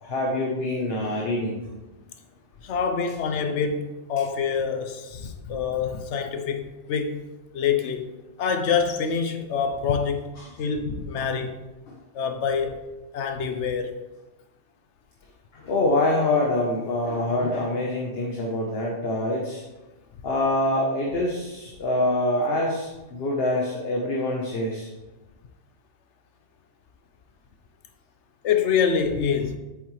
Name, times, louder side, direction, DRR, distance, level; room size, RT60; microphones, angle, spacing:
voice 1, 0.0-1.7 11.2-11.3 15.5-19.6 20.2-24.9, left 1 dB, 55° left, 1.3 m, -25 dB
voice 2, 2.6-7.2 7.5-8.1 8.4-10.3 10.6-11.7 12.1-12.8 13.1-14.0 28.4-29.6, left 6 dB, 70° left, 1.1 m, -26 dB
8.6 x 7.2 x 3.2 m
omnidirectional pair, 1.2 m